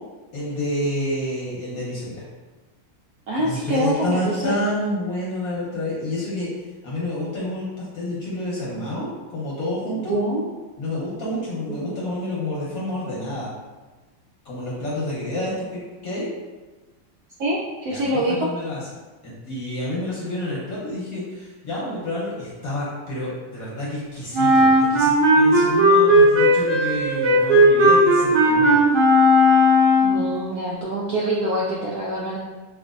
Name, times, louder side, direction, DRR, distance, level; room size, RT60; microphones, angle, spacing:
voice 1, 0.3-2.2 3.4-6.5 6.8-10.2 10.8-13.5 14.4-16.3 17.9-18.8 19.2-28.8, left 1 dB, 55° left, -6 dB, 1.1 m, -29 dB
voice 2, 3.3-4.6 10.1-10.5 11.7-11.9 17.4-18.3 30.0-32.4, right 1 dB, 90° right, -5 dB, 0.8 m, -25 dB
Wind instrument woodwind instrument, 24.3-30.3, equal, 60° right, 1.6 m, -16 dB
5.9 x 2.5 x 2.4 m, 1.2 s
omnidirectional pair, 2.3 m